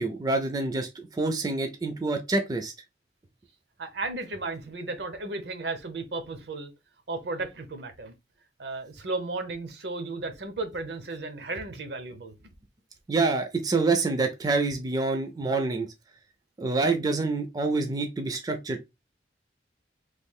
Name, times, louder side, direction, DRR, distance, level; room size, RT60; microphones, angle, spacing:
voice 1, 0.0-2.7 13.1-15.9 16.6-18.9, right 3 dB, 20° right, 0.4 m, -27 dB
voice 2, 3.8-6.7 7.1-8.1 8.6-12.5, right 3 dB, 70° right, 0.7 m, -34 dB
3.1 x 2.3 x 3.5 m
head